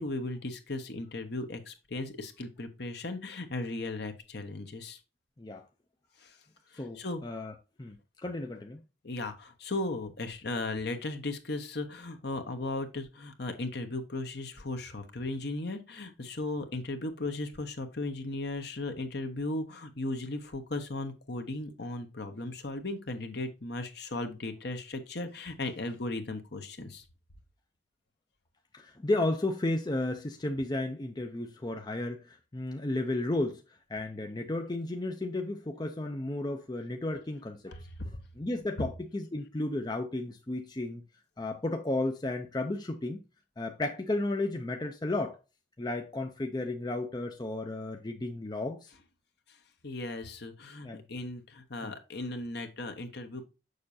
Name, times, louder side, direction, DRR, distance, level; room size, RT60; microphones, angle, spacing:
voice 1, 0.0-5.0 6.2-6.4 6.7-7.2 9.0-27.0 37.7-38.2 49.8-53.5, left 2 dB, 55° left, 1.1 m, -36 dB
voice 2, 6.8-8.0 8.2-8.8 28.7-33.6 33.9-37.9 38.4-41.0 41.4-43.2 43.6-45.4 45.8-48.9 50.8-51.0 51.8-51.9, left 2 dB, 20° left, 0.5 m, -33 dB
6.7 x 6.4 x 2.7 m
head